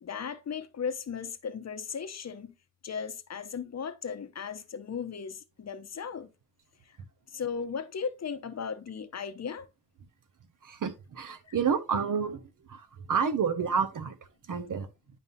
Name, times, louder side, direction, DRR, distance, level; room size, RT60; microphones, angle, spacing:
voice 1, 0.0-2.5 2.8-6.3 6.9-7.0 7.3-9.7 11.5-11.6, left 6 dB, 50° left, 0.7 m, -36 dB
voice 2, 10.6-14.2 14.5-14.9, right 6 dB, 65° right, 1.0 m, -30 dB
10.0 x 5.4 x 2.6 m
wide cardioid pair, 135°, 35 cm